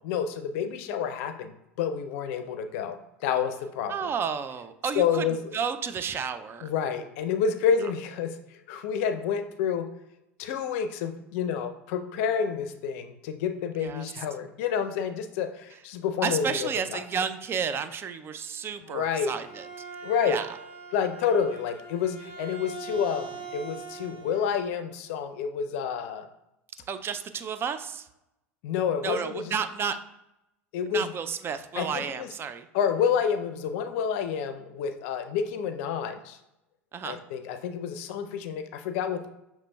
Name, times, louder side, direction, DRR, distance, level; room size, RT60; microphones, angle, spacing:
voice 1, 0.0-4.1 4.9-5.6 6.6-9.8 10.4-17.0 18.9-19.3 20.0-20.4 20.9-26.3 28.6-29.5 30.7-31.1 31.8-32.3 32.7-36.4 37.0-39.3, left 7 dB, 65° left, 7 dB, 0.5 m, -29 dB
voice 2, 3.9-5.2 5.5-6.7 13.8-14.1 16.2-19.7 20.3-20.5 26.9-28.0 29.0-30.0 30.9-32.7 36.9-37.2, right 7 dB, 30° right, 10 dB, 0.4 m, -31 dB
Bowed string instrument, 19.0-24.5, right 4 dB, 70° right, 1.5 m, -42 dB
6.5 x 3.0 x 2.3 m, 0.88 s
hypercardioid pair, 80°, 8 cm